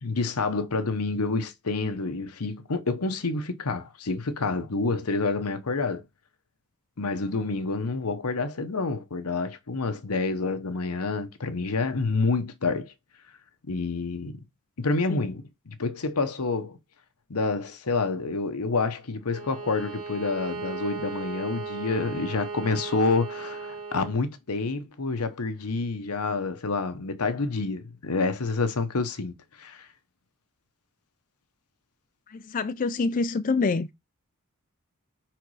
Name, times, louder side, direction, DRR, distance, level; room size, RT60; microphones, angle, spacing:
voice 1, 0.0-6.0 7.0-12.9 13.7-14.4 14.8-16.8 17.3-29.9, left 3 dB, 85° left, 1.0 m, -28 dB
Bowed string instrument, 19.3-24.2, right 4 dB, 80° right, 2.1 m, -36 dB
voice 2, 32.5-33.9, left 4 dB, 35° left, 0.4 m, -25 dB
5.1 x 4.5 x 4.8 m
head